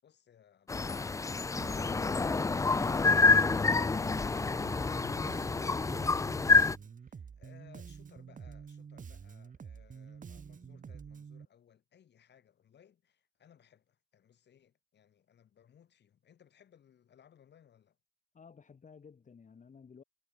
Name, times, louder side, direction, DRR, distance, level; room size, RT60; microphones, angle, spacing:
sound 1, 0.7-6.8, left 4 dB, 15° left, 0.4 m, -27 dB
Bass guitar, 1.6-11.4, right 6 dB, 40° right, 2.2 m, -48 dB
voice 1, 6.6-18.0, left 9 dB, 60° left, 7.8 m, -63 dB
voice 2, 18.3-20.0, left 6 dB, 40° left, 3.5 m, -54 dB
cardioid pair, 90°, 20 cm